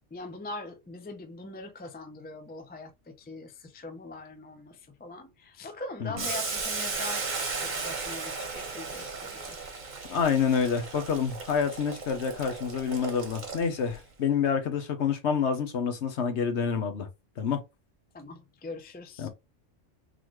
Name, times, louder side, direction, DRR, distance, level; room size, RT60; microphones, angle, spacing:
voice 1, 0.1-9.7 18.1-19.3, left 2 dB, 15° left, 0.3 m, -42 dB
Boiling, 6.2-14.0, right 4 dB, 40° right, 1.0 m, -35 dB
voice 2, 10.1-17.1 17.4-17.6 19.2-19.3, left 6 dB, 65° left, 1.1 m, -28 dB
4.0 x 3.0 x 3.0 m
omnidirectional pair, 1.3 m